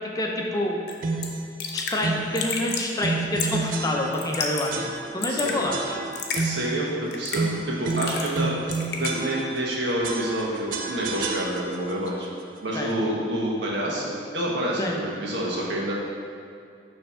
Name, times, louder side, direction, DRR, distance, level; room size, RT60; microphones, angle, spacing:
voice 1, 0.1-0.8 1.7-6.0 12.7-12.9 14.8-15.0, left 1 dB, 20° left, -1 dB, 0.6 m, -27 dB
Raindrop / Drip, 0.9-1.0 1.2-1.3 1.6-2.0 2.4-2.9 3.4-3.7 4.1-4.7 5.0-5.6 6.1-6.4 7.1-7.5 7.9-8.4 8.7-9.1, left 5 dB, 65° left, 0.7 m, -30 dB
sound 1, 1.0-1.4 2.0-2.4 3.0-4.4 4.7-5.3 5.7-6.8 7.3-9.7 10.0-11.9, right 3 dB, 50° right, 0.4 m, -30 dB
voice 2, 5.3-5.6 6.4-8.5 9.0-12.3 12.6-15.9, right 1 dB, 85° right, -4 dB, 1.4 m, -28 dB
6.8 x 3.3 x 5.6 m, 2.4 s
head